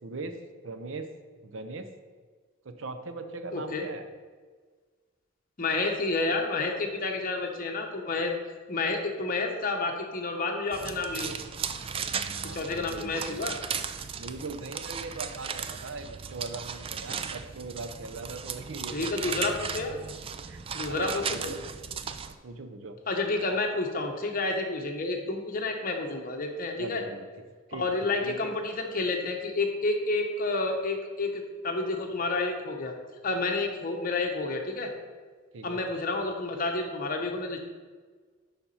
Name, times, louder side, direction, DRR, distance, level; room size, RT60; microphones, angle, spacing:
voice 1, 0.0-0.4 0.6-1.1 1.4-1.9 2.6-4.0 12.0-13.4 14.1-19.5 20.5-21.6 22.2-23.0 23.5-23.6 26.8-27.3 27.7-28.5 35.5-35.8, right 3 dB, 70° right, 8 dB, 0.7 m, -40 dB
voice 2, 3.5-3.8 5.6-8.3 8.7-11.3 12.4-13.6 18.9-20.0 20.7-21.5 23.1-27.0 27.7-32.9 33.2-34.9 35.6-37.6, left 3 dB, 45° left, 3 dB, 1.0 m, -30 dB
sound 1, 10.7-22.3, right 6 dB, 25° right, 0.3 m, -36 dB
7.0 x 5.2 x 5.7 m, 1.5 s
head